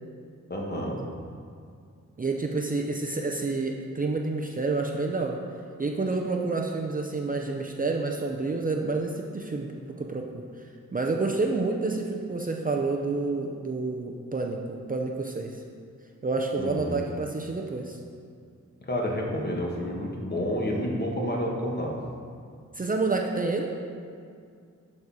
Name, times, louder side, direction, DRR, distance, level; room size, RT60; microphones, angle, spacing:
voice 1, 0.5-1.0 16.6-17.0 18.8-22.0, equal, 35° left, -2 dB, 1.4 m, -29 dB
voice 2, 2.2-5.4 5.8-9.7 10.0-10.4 10.9-15.6 16.2-18.0 22.7-23.7, right 3 dB, 30° right, 1 dB, 0.6 m, -29 dB
11.5 x 4.3 x 4.8 m, 2.3 s
wide cardioid pair, 110°, 30 cm